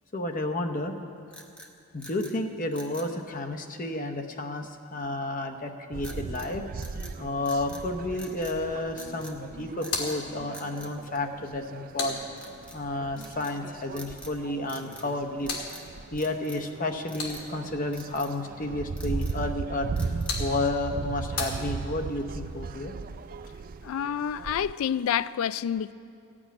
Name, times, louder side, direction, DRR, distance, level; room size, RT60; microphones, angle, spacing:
voice 1, 0.1-1.0 1.9-6.6 7.2-12.2 12.7-15.5 16.1-19.9 20.4-22.9, left 2 dB, 40° left, 0.8 m, -31 dB
sound 1, 1.3-2.4 2.7-3.1 6.0-6.5 6.8-7.9 8.1-8.6 9.0-9.4 9.8-10.2 10.5-11.7 12.3-12.8 13.2-13.6 13.9-14.4 14.6-15.1 15.4-15.9 16.2-16.7 17.1-17.5 17.9-18.3 18.8-19.5 20.0-20.5, equal, 5° left, 0.8 m, -48 dB
sound 2, 5.9-24.7, right 4 dB, 40° right, 0.3 m, -38 dB
sound 3, 9.8-12.9 14.9-17.8 19.8-22.2, left 4 dB, 85° left, 1.8 m, -39 dB
voice 2, 23.8-25.9, left 9 dB, 65° left, 0.3 m, -28 dB
15.0 x 6.2 x 9.4 m
head